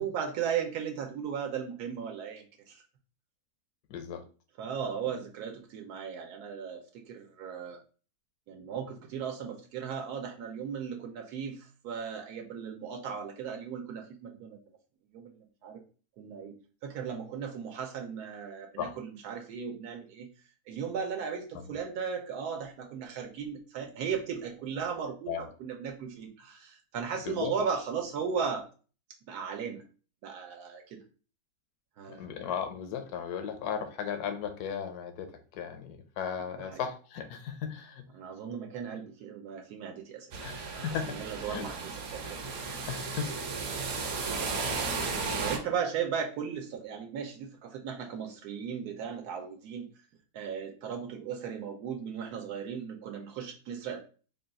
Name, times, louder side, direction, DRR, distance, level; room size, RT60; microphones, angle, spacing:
voice 1, 0.0-2.8 4.6-7.8 8.5-14.6 15.1-15.8 16.2-16.5 16.8-20.3 20.7-28.7 29.3-29.8 30.2-31.0 32.0-32.3 36.6-36.8 38.1-40.4 40.7-42.5 43.1-43.2 45.4-49.9 50.3-54.0, right 7 dB, 90° right, 2 dB, 1.2 m, -36 dB
voice 2, 3.9-4.2 18.8-18.9 21.6-21.7 25.3-25.5 27.3-27.6 32.1-38.0 40.4-41.6 42.9-43.3, left 8 dB, 80° left, 7 dB, 1.2 m, -36 dB
sound 1, 40.3-45.6, right 4 dB, 70° right, 1.2 m, -34 dB
3.7 x 2.3 x 3.9 m, 0.38 s
omnidirectional pair, 1.6 m